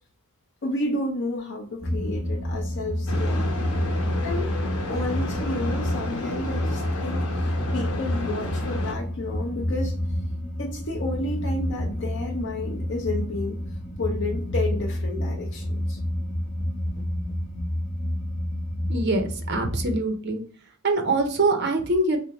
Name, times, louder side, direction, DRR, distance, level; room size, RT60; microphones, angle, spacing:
voice 1, 0.6-3.4 4.2-4.5 4.9-10.0 10.6-13.6 14.0-16.0, left 2 dB, 55° left, 0 dB, 0.6 m, -31 dB
sound 1, 1.8-20.0, equal, 30° left, 1.1 m, -29 dB
sound 2, 3.1-8.9, left 2 dB, 90° left, 0.9 m, -32 dB
voice 2, 18.9-20.4 20.8-22.2, right 2 dB, 50° right, 6 dB, 0.7 m, -24 dB
3.6 x 3.2 x 2.9 m, 0.43 s
head